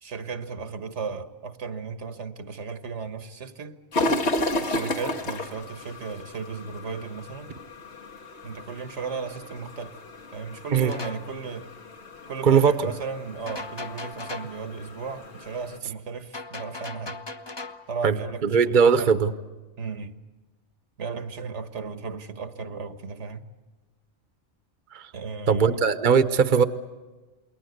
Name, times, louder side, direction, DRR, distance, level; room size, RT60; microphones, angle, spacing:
voice 1, 0.0-3.8 4.6-7.5 8.4-10.0 10.3-11.7 12.3-17.2 17.9-19.1 19.8-20.2 21.0-23.4 25.1-25.8, right 5 dB, 75° right, 1.6 m, -35 dB
sound 1, 3.9-15.8, left 1 dB, 65° left, 1.9 m, -33 dB
sound 2, 10.8-11.3 13.5-14.6 16.3-17.9, left 3 dB, 25° left, 1.0 m, -38 dB
voice 2, 12.4-12.9 18.0-18.1 18.4-19.3 24.9-25.1 25.5-26.6, right 6 dB, 45° right, 1.1 m, -19 dB
28.5 x 21.5 x 8.0 m
omnidirectional pair, 1.2 m